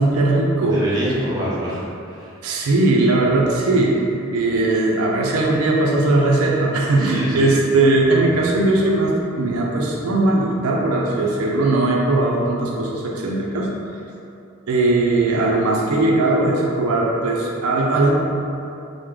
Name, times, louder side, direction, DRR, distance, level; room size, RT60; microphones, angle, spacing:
voice 1, 0.0-0.8 2.4-4.1 4.3-13.7 14.7-18.1, right 2 dB, 90° right, -2 dB, 0.4 m, -19 dB
voice 2, 0.6-2.3 7.0-7.5, equal, 20° right, -9 dB, 0.7 m, -26 dB
3.1 x 2.0 x 3.5 m, 2.7 s
head